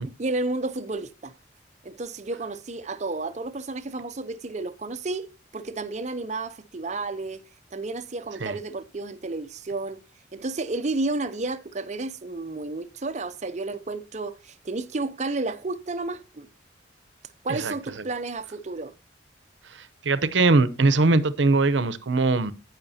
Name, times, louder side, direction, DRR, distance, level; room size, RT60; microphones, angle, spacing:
voice 1, 0.2-1.3 1.8-7.4 7.7-10.0 10.3-16.5 17.4-18.9, right 3 dB, 40° right, 0.6 m, -31 dB
voice 2, 17.5-18.0 19.6-22.5, right 3 dB, 70° right, 0.7 m, -22 dB
16.0 x 5.7 x 2.8 m
head